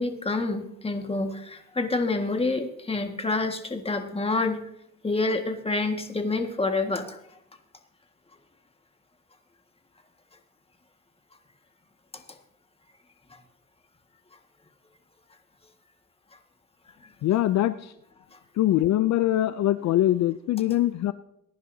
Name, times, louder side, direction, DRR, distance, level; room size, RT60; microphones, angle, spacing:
voice 1, 0.0-4.6 5.0-7.2, left 3 dB, 20° left, 5 dB, 1.7 m, -27 dB
voice 2, 17.2-17.9 18.6-21.1, left 13 dB, 65° left, 14 dB, 0.5 m, -23 dB
21.0 x 10.5 x 2.7 m, 0.79 s
cardioid pair, 90°, 30 cm